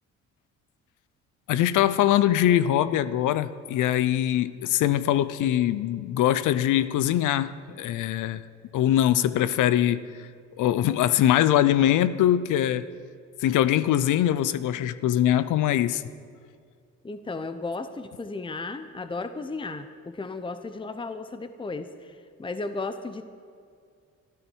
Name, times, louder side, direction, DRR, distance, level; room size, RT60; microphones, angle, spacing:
voice 1, 1.5-7.5 7.8-8.4 8.7-10.0 10.6-12.8 13.4-16.0, left 12 dB, 85° left, 15 dB, 0.7 m, -22 dB
voice 2, 17.0-23.2, left 3 dB, 15° left, 10 dB, 0.8 m, -34 dB
22.5 x 13.5 x 4.6 m, 2.3 s
cardioid pair, 90°, 30 cm